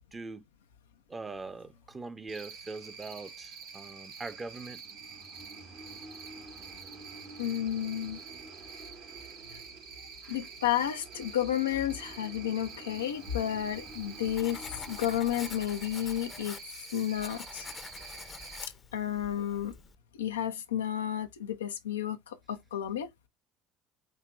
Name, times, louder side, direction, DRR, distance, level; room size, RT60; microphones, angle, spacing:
voice 1, 0.1-0.4 1.1-4.8 10.2-10.4, right 3 dB, 25° right, 0.8 m, -42 dB
Cricket, 2.3-18.6, right 6 dB, 80° right, 3.5 m, -48 dB
sound 1, 4.6-15.6, right 3 dB, 60° right, 1.6 m, -51 dB
voice 2, 7.4-8.2 9.5-9.6 10.3-16.6 16.9-17.7 18.6-19.7 20.1-23.1, left 11 dB, 85° left, 0.6 m, -32 dB
Writing, 13.2-20.0, left 4 dB, 30° left, 0.7 m, -47 dB
5.7 x 2.9 x 2.5 m
hypercardioid pair, 60°, 0 cm